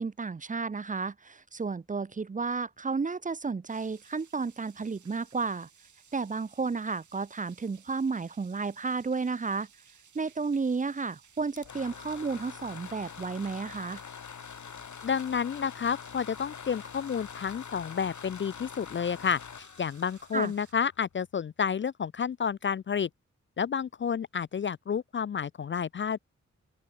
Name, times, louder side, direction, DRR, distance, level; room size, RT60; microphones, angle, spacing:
voice 1, 0.0-5.7 6.1-9.7 10.1-14.0 20.3-20.5, right 4 dB, 25° right, 0.6 m, -32 dB
sound 1, 3.7-20.7, right 7 dB, 85° right, 4.7 m, -60 dB
sound 2, 11.4-21.2, left 7 dB, 80° left, 3.8 m, -45 dB
voice 2, 15.0-23.1 23.6-26.2, left 7 dB, 45° left, 0.4 m, -30 dB
open air
wide cardioid pair, 155°, 29 cm